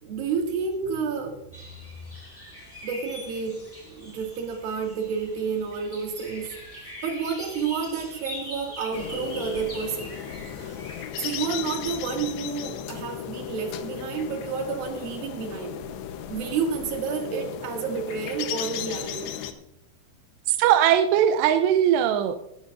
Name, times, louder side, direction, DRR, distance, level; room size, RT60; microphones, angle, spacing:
voice 1, 0.0-1.4 2.8-6.5 7.0-10.2 11.2-15.8 16.3-19.3, right 5 dB, 65° right, 2 dB, 3.6 m, -30 dB
sound 1, 1.5-11.0, left 1 dB, 5° left, 3.4 m, -42 dB
sound 2, 8.9-19.5, left 10 dB, 80° left, 3.0 m, -35 dB
voice 2, 20.5-22.4, right 10 dB, 90° right, 10 dB, 2.8 m, -20 dB
20.0 x 12.0 x 2.5 m, 0.84 s
omnidirectional pair, 4.9 m